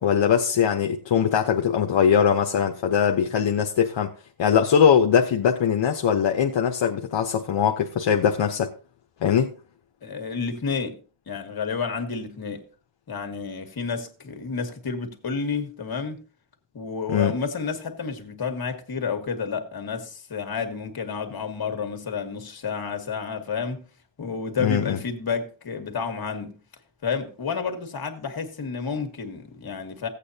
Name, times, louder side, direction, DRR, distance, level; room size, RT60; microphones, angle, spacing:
voice 1, 0.0-4.1 4.4-8.7 9.2-9.5 17.1-17.3 24.6-25.0, left 8 dB, 70° left, 0.9 m, -21 dB
voice 2, 10.0-11.0 11.3-12.7 13.1-16.2 16.7-23.9 24.2-26.6 27.0-30.1, left 5 dB, 50° left, 1.7 m, -30 dB
15.5 x 8.5 x 2.8 m
wide cardioid pair, 155°, 47 cm